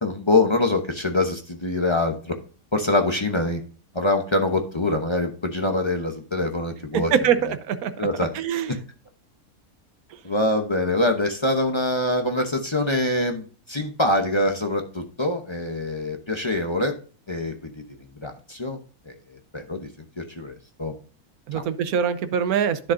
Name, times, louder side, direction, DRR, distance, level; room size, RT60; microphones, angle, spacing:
voice 1, 0.0-2.4 2.7-3.6 3.9-7.1 8.0-8.3 8.7-8.8 10.2-16.9 17.3-17.7 18.2-18.8 19.1-19.2 19.5-19.9 20.2-20.9 21.5-21.6, left 2 dB, 25° left, 4 dB, 0.7 m, -24 dB
voice 2, 6.9-7.9 8.3-8.8 10.1-10.2 21.5-22.9, right 8 dB, 75° right, 11 dB, 1.2 m, -23 dB
10.5 x 6.5 x 2.6 m, 0.39 s
omnidirectional pair, 1.6 m